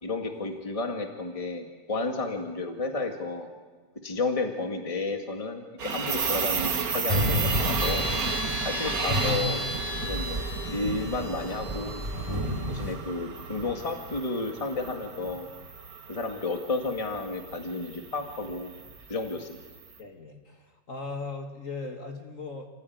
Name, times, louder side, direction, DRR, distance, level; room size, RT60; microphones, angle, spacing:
voice 1, 0.0-3.5 4.0-8.1 8.6-9.6 10.0-12.0 12.7-15.5 16.1-18.7 19.1-19.6, left 3 dB, 20° left, 4 dB, 2.0 m, -32 dB
sound 1, 5.8-19.8, right 5 dB, 55° right, 1.9 m, -34 dB
sound 2, 7.1-12.9, equal, 15° right, 3.6 m, -30 dB
voice 2, 20.0-22.7, left 3 dB, 45° left, 3 dB, 2.3 m, -39 dB
28.5 x 15.0 x 9.5 m, 1.4 s
omnidirectional pair, 2.0 m